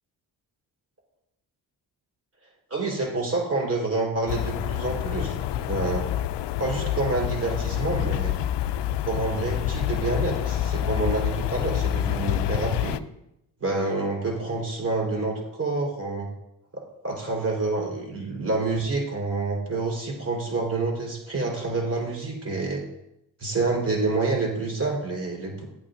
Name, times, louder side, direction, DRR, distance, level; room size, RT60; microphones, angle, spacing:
voice 1, 2.7-5.4 5.7-6.0 6.6-8.3 9.0-13.0 13.6-16.3 16.7-22.8 23.4-25.6, right 3 dB, 30° right, -1 dB, 4.6 m, -28 dB
sound 1, 4.3-13.0, left 11 dB, 65° left, 0.6 m, -27 dB
15.0 x 8.9 x 2.8 m, 0.85 s
supercardioid pair, 60°, 45 cm